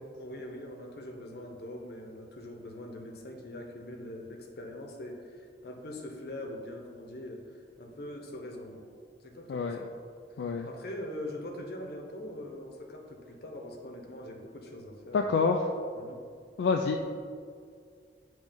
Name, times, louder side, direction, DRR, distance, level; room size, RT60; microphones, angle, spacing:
voice 1, 0.2-8.9 9.2-9.9 10.4-15.4 15.9-16.2, left 1 dB, 60° left, 1 dB, 0.8 m, -42 dB
voice 2, 10.4-10.7 15.1-15.7 16.6-17.0, left 4 dB, 80° left, 3 dB, 0.3 m, -27 dB
8.8 x 3.1 x 3.5 m, 2.2 s
head